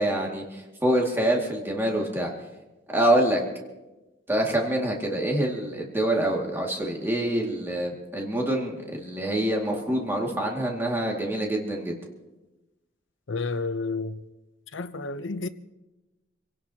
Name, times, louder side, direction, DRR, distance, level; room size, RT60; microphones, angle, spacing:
voice 1, 0.0-2.3 2.9-3.4 4.3-12.0, right 1 dB, 10° right, 2.2 m, -26 dB
voice 2, 13.3-14.3 14.7-15.5, left 3 dB, 85° left, 0.8 m, -30 dB
26.5 x 17.5 x 2.9 m
head